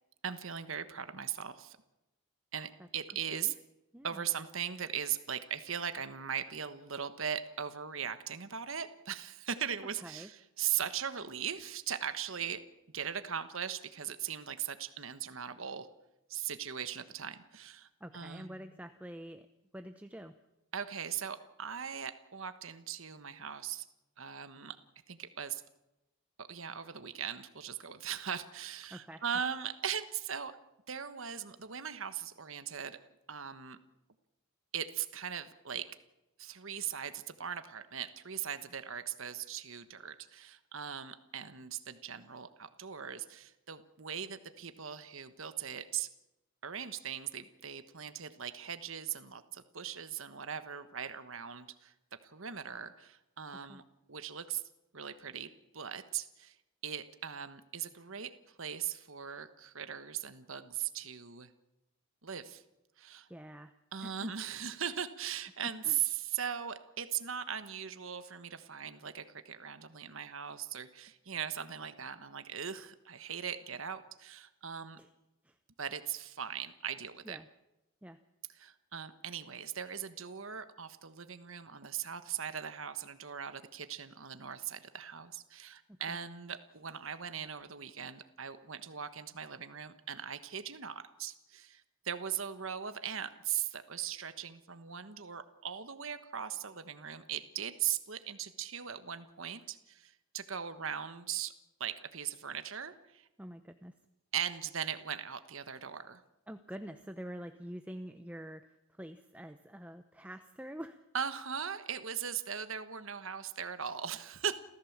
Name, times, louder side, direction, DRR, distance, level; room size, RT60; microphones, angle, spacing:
voice 1, 0.2-1.8 2.5-3.5 4.0-12.6 12.9-15.9 16.3-18.7 20.7-23.8 24.2-24.8 25.1-25.6 26.4-30.5 30.9-33.0 33.3-33.8 34.7-35.9 36.4-46.1 46.6-51.9 52.2-53.8 54.1-54.6 54.9-56.6 56.8-61.5 62.2-62.6 63.0-63.3 63.9-75.0 75.8-77.4 78.5-101.5 101.8-103.3 104.3-106.2 111.1-114.6, right 8 dB, 65° right, 11 dB, 1.3 m, -39 dB
voice 2, 3.9-4.3 10.0-10.3 18.0-19.5 19.7-20.3 28.9-29.2 53.7-53.8 63.3-63.7 64.0-64.3 65.8-66.0 75.0-75.1 75.4-75.6 77.2-77.5 78.0-78.2 85.9-86.2 103.4-103.9 106.5-111.0, equal, 5° right, 9 dB, 0.8 m, -46 dB
29.0 x 15.5 x 7.3 m, 0.95 s
head